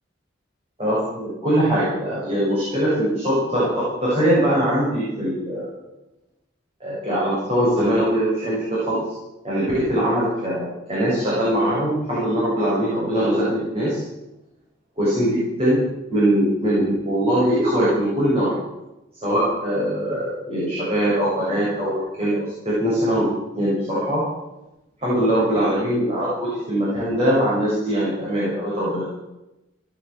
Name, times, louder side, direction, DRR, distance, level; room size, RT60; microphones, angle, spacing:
voice 1, 0.8-5.7 6.8-9.0 9.4-14.0 15.0-15.8 16.1-18.5 19.2-23.3 23.6-24.2 25.0-29.0, equal, 30° right, -9 dB, 7.2 m, -21 dB
18.0 x 9.0 x 7.9 m, 0.96 s
head